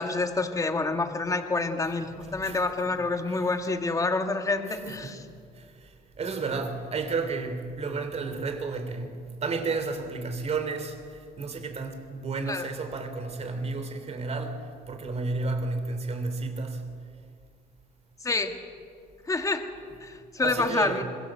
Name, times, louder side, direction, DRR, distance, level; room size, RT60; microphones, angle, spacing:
voice 1, 0.0-5.2 12.5-12.7 18.2-18.5 19.3-19.6 20.0-21.0, left 3 dB, 20° left, 2.0 m, -28 dB
voice 2, 4.8-5.2 5.5-16.8 20.4-21.0, right 3 dB, 40° right, 3.4 m, -32 dB
25.5 x 22.5 x 7.6 m
cardioid pair, 110°, 17 cm